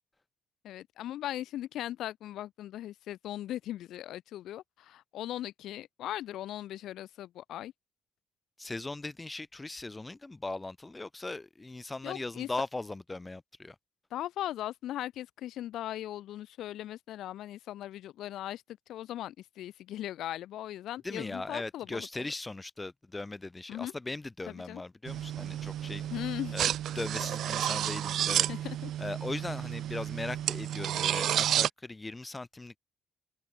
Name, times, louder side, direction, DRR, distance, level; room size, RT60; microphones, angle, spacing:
voice 1, 0.6-7.7 12.0-12.5 14.1-18.6 18.9-22.3 23.7-23.9 24.5-24.8 26.1-26.6 28.5-28.9, left 13 dB, 80° left, 2.1 m, -39 dB
voice 2, 8.6-13.7 21.0-26.1 26.5-26.7 26.9-28.5 29.0-32.8, left 2 dB, 20° left, 4.9 m, -39 dB
sound 1, 25.1-31.7, right 11 dB, 75° right, 3.5 m, -31 dB
cardioid pair, 90°, 0 cm